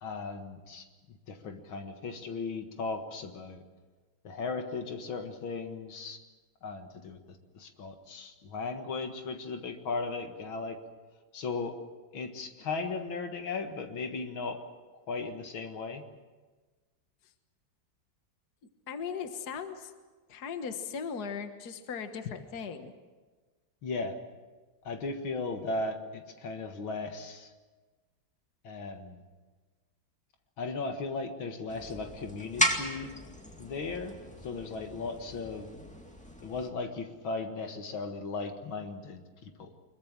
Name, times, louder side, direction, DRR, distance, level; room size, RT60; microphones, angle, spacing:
voice 1, 0.0-3.6 4.2-6.2 6.6-7.2 7.5-10.8 11.3-11.8 12.1-14.6 15.1-16.0 23.8-24.2 24.8-27.5 28.6-29.2 30.6-33.1 33.6-34.1 34.4-35.7 36.4-39.7, left 3 dB, 80° left, 6 dB, 2.5 m, -37 dB
voice 2, 18.9-19.9 20.3-22.9, left 6 dB, 55° left, 7 dB, 1.9 m, -38 dB
sound 1, 31.7-36.7, equal, 5° left, 2.1 m, -35 dB
24.5 x 22.5 x 7.4 m, 1.3 s
omnidirectional pair, 2.2 m